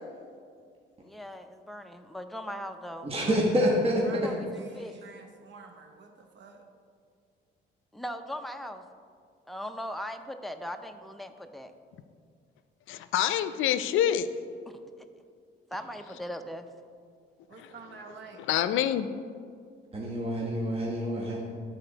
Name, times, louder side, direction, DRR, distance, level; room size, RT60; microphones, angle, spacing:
voice 1, 1.0-3.4 4.2-5.0 7.9-8.8 9.5-11.7 14.7-14.9 15.7-16.7, equal, ahead, 6 dB, 0.5 m, -39 dB
voice 2, 3.0-4.0 19.9-21.4, equal, 30° right, -3 dB, 1.2 m, -27 dB
voice 3, 4.0-6.6 17.5-18.4, right 5 dB, 65° right, 4 dB, 0.9 m, -48 dB
voice 4, 12.9-14.3 17.6-17.7 18.5-19.1, left 11 dB, 85° left, 12 dB, 0.4 m, -26 dB
12.0 x 4.2 x 3.9 m, 2.2 s
cardioid pair, 90°, 20 cm